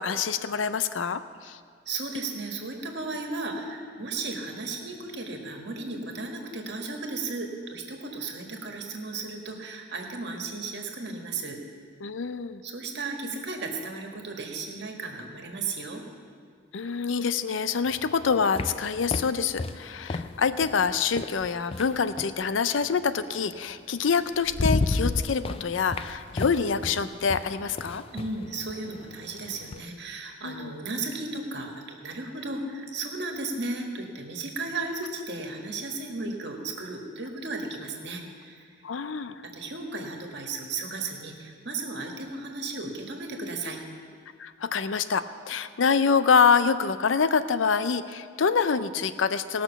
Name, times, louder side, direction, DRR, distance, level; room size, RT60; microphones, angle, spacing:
voice 1, 0.0-1.6 12.0-12.6 16.7-28.0 30.4-30.7 38.8-39.4 44.4-49.6, left 5 dB, 90° left, 12 dB, 0.6 m, -26 dB
voice 2, 1.8-11.6 12.6-16.0 28.1-38.7 39.5-43.8, right 3 dB, 60° right, 2 dB, 1.6 m, -35 dB
sound 1, 17.9-22.4 23.7-23.8 24.2-29.9, left 3 dB, 30° left, 0.4 m, -33 dB
18.5 x 6.1 x 7.0 m, 2.1 s
head